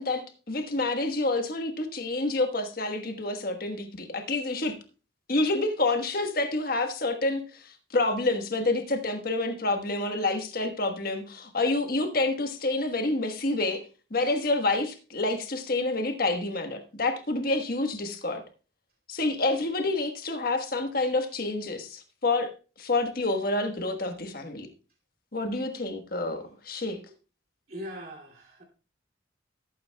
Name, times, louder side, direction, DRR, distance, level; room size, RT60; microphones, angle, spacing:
voice 1, 0.0-4.8 5.3-13.8 14.1-18.4 19.1-22.5 22.8-24.7 25.3-27.0, left 2 dB, 50° left, 1.3 m, -28 dB
voice 2, 27.7-28.6, equal, 50° right, 2.6 m, -40 dB
16.0 x 8.6 x 2.3 m
head